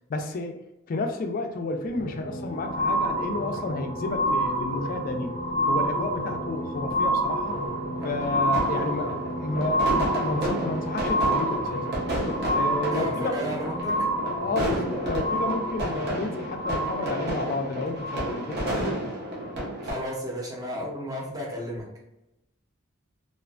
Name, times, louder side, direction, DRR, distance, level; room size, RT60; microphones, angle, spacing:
voice 1, 0.1-0.6 0.9-5.3 5.7-7.6 8.0-12.0 12.5-13.5 14.2-19.1, left 3 dB, 45° left, 5 dB, 0.3 m, -31 dB
sound 1, 1.9-18.7 19.4-19.5, right 1 dB, 25° left, 0.8 m, -29 dB
sound 2, 7.4-19.9, right 1 dB, 55° right, 0.7 m, -32 dB
voice 2, 12.9-14.1 19.8-21.9, equal, 15° right, -3 dB, 0.6 m, -33 dB
2.4 x 2.2 x 2.3 m, 0.92 s
head